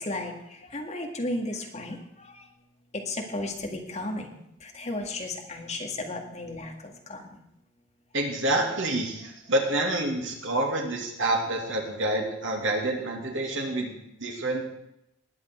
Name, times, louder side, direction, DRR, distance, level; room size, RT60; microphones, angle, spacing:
voice 1, 0.0-2.4 2.9-4.3 4.6-7.4, left 2 dB, 35° left, 1 dB, 2.0 m, -34 dB
voice 2, 8.1-14.6, right 1 dB, 75° right, 1 dB, 2.6 m, -28 dB
20.0 x 9.0 x 4.6 m, 0.81 s
head